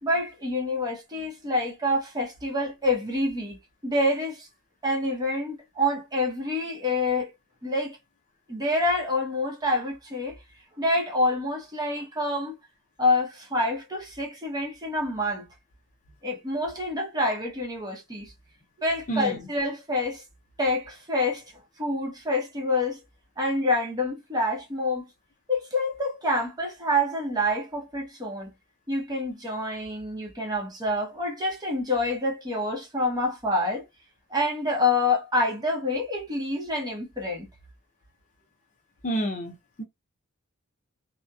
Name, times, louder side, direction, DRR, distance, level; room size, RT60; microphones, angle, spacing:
voice 1, 0.0-3.6 3.8-4.5 4.8-7.3 7.6-8.0 8.5-10.4 10.8-12.6 13.0-15.4 16.2-18.3 18.8-20.2 20.6-21.4 21.8-23.0 23.4-25.1 25.5-28.5 28.9-33.8 34.3-37.5, left 1 dB, 20° right, 0.7 m, -27 dB
voice 2, 39.0-39.8, right 1 dB, 35° left, 0.5 m, -29 dB
2.8 x 2.1 x 2.2 m
head